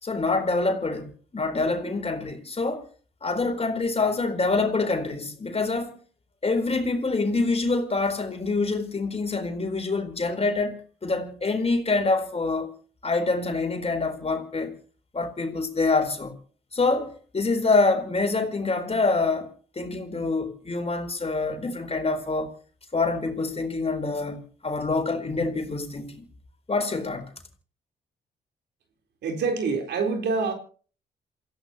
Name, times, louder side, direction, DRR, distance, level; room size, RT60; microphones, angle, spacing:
voice 1, 0.0-2.9 3.2-6.0 6.4-10.8 11.0-12.7 13.0-14.7 15.1-16.4 16.7-19.5 19.8-22.5 22.9-26.2 26.7-27.3, left 3 dB, 35° left, 4.3 m, -26 dB
voice 2, 29.2-30.5, right 4 dB, 75° right, 4.1 m, -26 dB
28.0 x 15.5 x 3.0 m
supercardioid pair, 55°, 18 cm